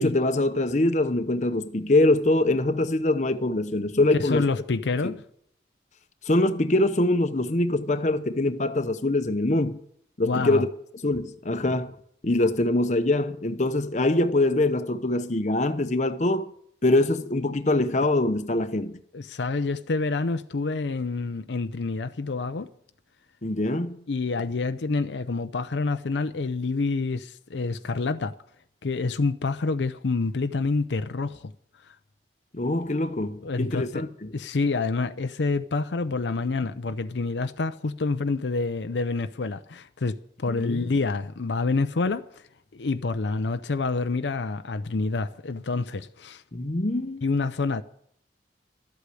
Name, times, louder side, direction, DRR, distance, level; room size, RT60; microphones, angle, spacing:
voice 1, 0.0-4.5 6.3-9.8 10.2-10.7 11.0-11.9 12.2-16.5 16.8-19.0 23.4-24.0 32.5-34.3 40.5-40.8 46.5-47.2, left 2 dB, 40° left, 0.8 m, -24 dB
voice 2, 4.2-5.2 10.2-10.7 19.1-22.7 24.1-28.3 28.8-31.5 31.9-32.0 33.4-34.0 34.3-42.3 42.7-46.4 47.2-47.8, left 3 dB, 80° left, 0.6 m, -27 dB
13.0 x 8.2 x 8.4 m
head